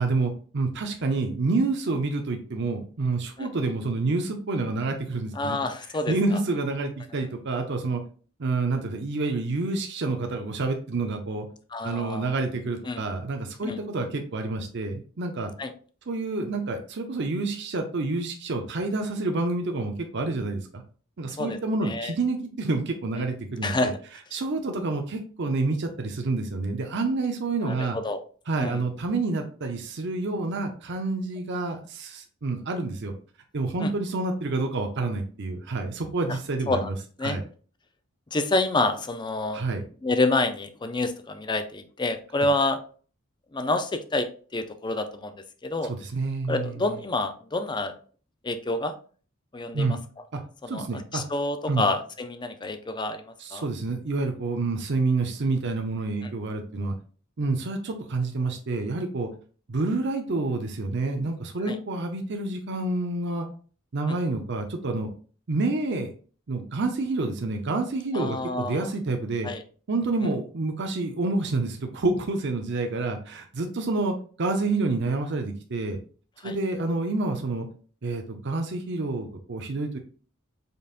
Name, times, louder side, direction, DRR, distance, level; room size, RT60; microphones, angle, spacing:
voice 1, 0.0-5.6 6.1-8.0 8.4-11.5 11.8-15.5 16.1-20.8 21.2-23.9 24.3-28.0 28.5-33.1 33.5-36.9 37.2-37.4 39.5-39.8 45.9-46.8 49.7-50.0 50.3-50.4 50.7-51.2 51.7-51.9 53.4-57.0 57.4-59.3 59.7-63.5 63.9-65.1 65.5-66.1 66.5-69.5 69.9-76.0 76.4-77.7 78.0-80.0, right 3 dB, 55° right, 4 dB, 0.6 m, -28 dB
voice 2, 5.3-6.4 11.7-12.3 12.9-13.0 13.6-13.8 15.6-15.7 21.4-22.1 23.6-24.0 27.6-28.2 28.6-28.8 33.8-33.9 36.3-36.4 36.7-36.9 37.2-37.4 38.3-39.6 40.0-42.8 43.5-45.3 45.6-45.9 46.5-48.0 48.4-49.0 49.5-50.0 50.6-53.7 56.2-56.3 61.7-61.8 64.1-64.2 68.1-68.9 69.4-69.6 76.4-76.6, left 2 dB, 20° left, 9 dB, 0.5 m, -28 dB
5.3 x 4.0 x 2.4 m, 0.41 s
head